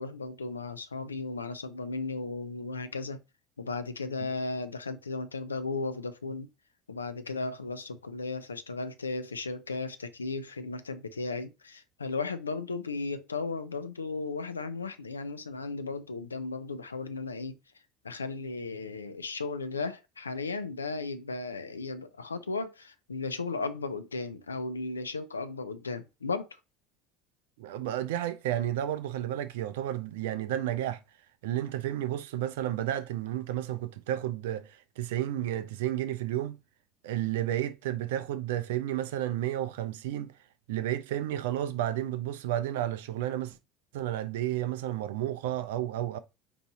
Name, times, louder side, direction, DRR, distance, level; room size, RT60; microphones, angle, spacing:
voice 1, 0.0-3.2 3.6-6.5 6.9-17.6 18.0-26.5, left 3 dB, 80° left, 0.4 m, -35 dB
voice 2, 27.6-31.0 31.4-36.6 37.0-40.3 40.7-43.6 43.9-46.2, right 12 dB, 65° right, 0.4 m, -32 dB
4.6 x 2.6 x 4.0 m
figure-of-eight pair, 65°, 0 cm